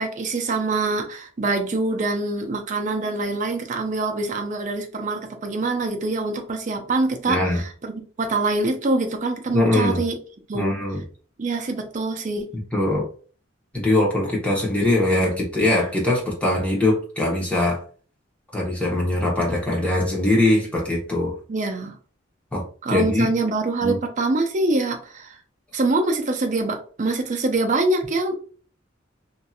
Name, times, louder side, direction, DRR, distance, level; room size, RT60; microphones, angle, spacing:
voice 1, 0.0-10.2 10.5-10.8 11.4-12.5 21.5-22.0 22.8-25.4 25.7-28.3, right 2 dB, 40° right, 4 dB, 0.5 m, -24 dB
voice 2, 7.3-7.6 9.5-10.0 10.5-11.0 12.7-13.1 13.7-17.8 18.5-21.3 22.5-22.6 22.9-23.3 23.8-24.0, left 1 dB, 5° left, -3 dB, 0.9 m, -21 dB
2.7 x 2.6 x 2.3 m, 0.41 s
head